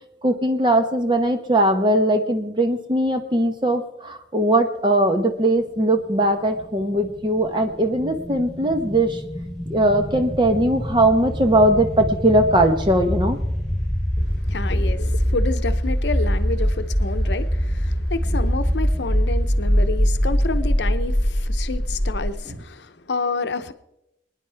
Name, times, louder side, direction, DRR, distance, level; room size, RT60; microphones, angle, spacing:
voice 1, 0.2-9.2 9.7-13.4 22.5-22.6, right 1 dB, 25° right, 6 dB, 1.0 m, -20 dB
sound 1, 6.4-22.3, equal, ahead, 3.4 m, -23 dB
voice 2, 14.2-23.7, left 3 dB, 80° left, 11 dB, 0.7 m, -29 dB
24.5 x 10.0 x 3.4 m, 0.87 s
head